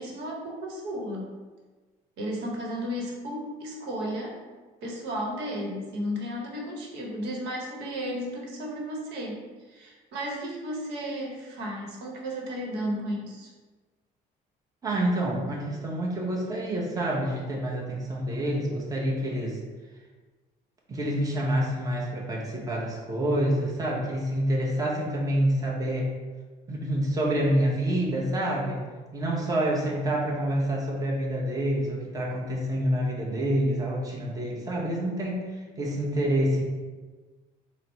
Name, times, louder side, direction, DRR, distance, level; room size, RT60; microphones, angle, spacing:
voice 1, 0.0-1.3 2.2-4.4 4.8-13.5, equal, 85° right, -1 dB, 0.9 m, -34 dB
voice 2, 14.8-19.6 20.9-26.1 26.7-28.8 29.1-35.4 35.8-36.6, right 1 dB, 20° right, -3 dB, 0.8 m, -27 dB
4.1 x 2.0 x 4.4 m, 1.3 s
cardioid pair, 110°, 17 cm